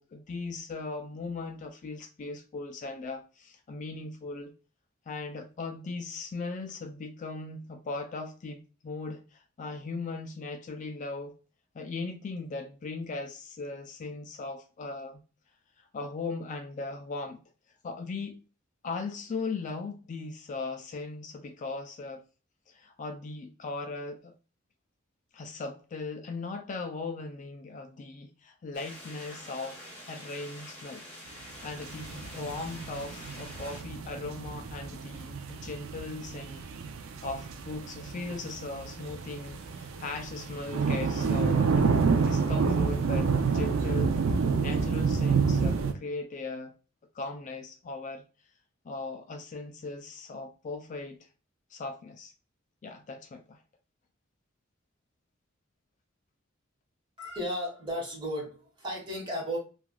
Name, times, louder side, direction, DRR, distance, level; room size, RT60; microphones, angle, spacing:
voice 1, 0.0-4.5 5.1-11.3 11.7-15.2 15.8-17.4 17.8-18.4 18.8-22.2 22.7-24.3 25.3-29.8 30.1-31.0 31.6-36.7 37.2-44.2 44.5-46.7 47.1-48.2 48.8-51.2 51.7-52.3 52.8-53.6, left 3 dB, 40° left, 0.3 m, -38 dB
sound 1, 28.7-33.8, equal, 10° left, 1.3 m, -46 dB
sound 2, 31.7-45.9, right 5 dB, 85° right, 0.4 m, -29 dB
voice 2, 57.2-59.6, equal, 25° right, 1.1 m, -34 dB
3.2 x 2.4 x 2.2 m
head